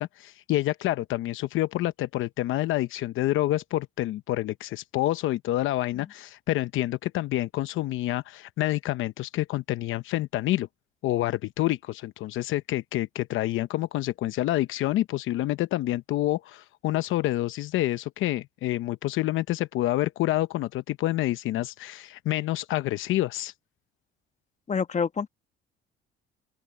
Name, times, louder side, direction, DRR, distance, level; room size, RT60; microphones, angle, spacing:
voice 1, 0.0-10.7 11.0-23.5, left 15 dB, 70° left, 0.8 m, -28 dB
voice 2, 24.7-25.3, left 6 dB, 35° left, 1.3 m, -27 dB
open air
supercardioid pair, 80°, 21 cm